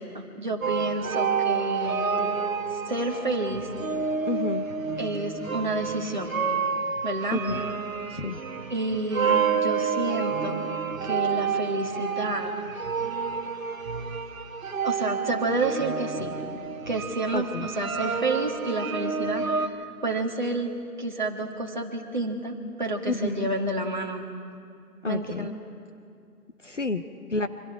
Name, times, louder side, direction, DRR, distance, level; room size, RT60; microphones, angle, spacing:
voice 1, 0.0-2.1 2.7-3.7 5.0-6.4 7.0-7.4 8.7-10.6 11.0-12.5 14.8-16.4 16.9-20.7 21.0-24.2 25.0-25.5, right 2 dB, 30° right, 0 dB, 1.6 m, -30 dB
sound 1, 0.6-19.7, right 5 dB, 60° right, 1.3 m, -29 dB
voice 2, 4.3-4.7 7.3-7.6 8.1-8.4 17.3-17.7 23.1-23.5 25.0-25.5 26.6-27.0 27.3-27.5, left 3 dB, 50° left, 9 dB, 0.9 m, -29 dB
27.5 x 24.5 x 4.6 m, 2.4 s
figure-of-eight pair, 180°, 46 cm